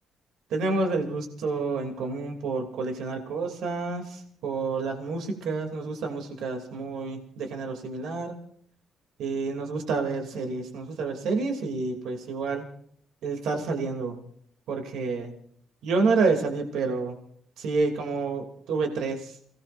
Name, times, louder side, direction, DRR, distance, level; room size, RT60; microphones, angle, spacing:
voice 1, 0.5-8.3 9.2-12.7 13.2-14.2 14.7-15.3 15.8-17.1 17.6-19.4, right 4 dB, 80° right, 3 dB, 2.9 m, -29 dB
28.5 x 18.5 x 2.6 m, 0.65 s
cardioid pair, 90°, 0 cm